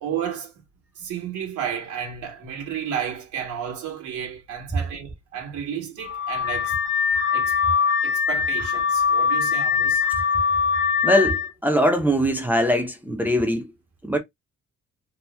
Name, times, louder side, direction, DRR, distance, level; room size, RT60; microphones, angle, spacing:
voice 1, 0.0-0.5 1.0-6.8 7.3-7.5 8.0-10.0, right 8 dB, 85° right, 1.0 m, -32 dB
Car / Alarm, 6.0-11.5, left 6 dB, 75° left, 0.8 m, -22 dB
voice 2, 11.0-13.7 14.0-14.2, equal, 5° right, 0.6 m, -21 dB
2.8 x 2.6 x 2.2 m
cardioid pair, 105°, 29 cm